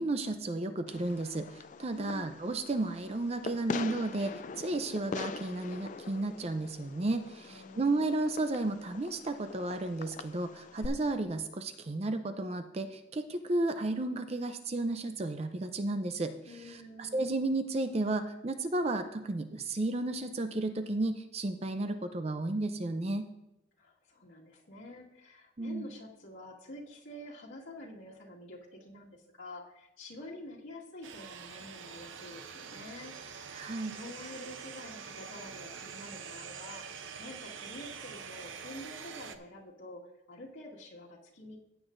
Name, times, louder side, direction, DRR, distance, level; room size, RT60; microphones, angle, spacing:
voice 1, 0.0-16.3 16.7-23.3 25.6-25.9 33.5-34.0, right 2 dB, 30° right, 8 dB, 0.5 m, -33 dB
Fireworks, 0.9-10.9, left 4 dB, 40° left, 0.3 m, -44 dB
voice 2, 1.9-2.4 7.4-8.1 16.5-17.4 23.8-33.6 33.9-41.6, left 1 dB, 85° left, -5 dB, 1.9 m, -48 dB
sound 1, 31.0-39.4, right 6 dB, 80° right, 0.7 m, -45 dB
15.5 x 8.1 x 2.6 m, 0.89 s
head